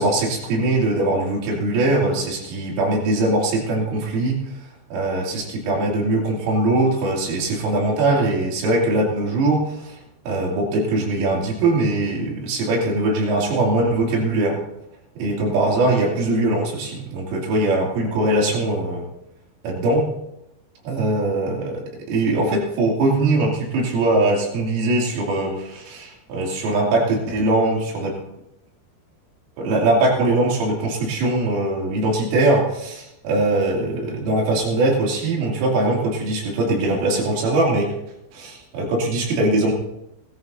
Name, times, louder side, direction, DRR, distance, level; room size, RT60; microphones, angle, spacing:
voice 1, 0.0-10.0 10.3-14.6 15.2-19.1 19.6-20.0 20.9-28.2 29.6-37.9 38.3-39.7, right 2 dB, 80° right, -2 dB, 5.3 m, -21 dB
19.0 x 13.5 x 2.7 m, 0.84 s
omnidirectional pair, 5.8 m